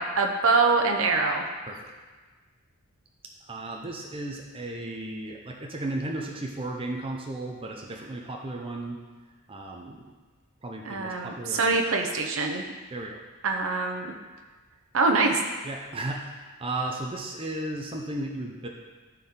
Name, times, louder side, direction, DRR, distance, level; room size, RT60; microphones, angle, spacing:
voice 1, 0.0-1.4 10.9-12.6 13.4-14.1 14.9-15.4, right 3 dB, 60° right, 3 dB, 0.9 m, -24 dB
voice 2, 3.5-9.0 9.5-10.1 10.6-11.8 12.9-13.2 15.6-18.7, right 2 dB, 25° right, 0 dB, 0.7 m, -35 dB
12.5 x 4.5 x 3.8 m, 1.3 s
head